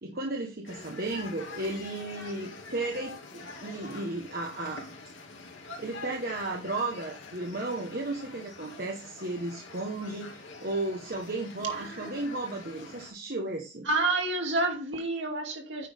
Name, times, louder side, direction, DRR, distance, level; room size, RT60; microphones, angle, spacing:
voice 1, 0.0-4.9 5.8-13.9, right 2 dB, 50° right, 1.2 m, -34 dB
sound 1, 0.6-13.1, left 3 dB, 80° left, 2.2 m, -45 dB
voice 2, 13.8-15.9, right 2 dB, 70° right, 2.4 m, -28 dB
9.0 x 6.1 x 3.6 m
head